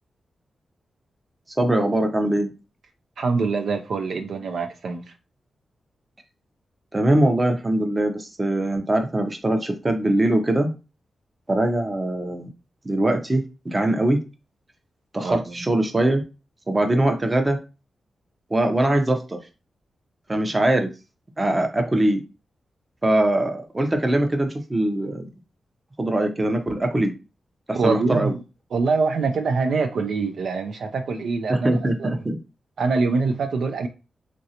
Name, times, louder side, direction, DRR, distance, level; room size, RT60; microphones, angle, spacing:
voice 1, 1.6-2.5 6.9-10.7 11.5-12.5 12.8-14.2 15.1-16.2 16.7-17.6 18.5-19.4 20.3-20.9 21.4-22.2 23.0-25.3 26.0-27.1 27.7-28.3 31.5-32.4, right 1 dB, 25° right, 0.7 m, -22 dB
voice 2, 3.2-5.0 15.2-15.5 27.7-28.4 28.7-32.1 32.8-33.9, right 4 dB, 75° right, 0.4 m, -24 dB
3.2 x 2.5 x 2.8 m
cardioid pair, 70°, 0 cm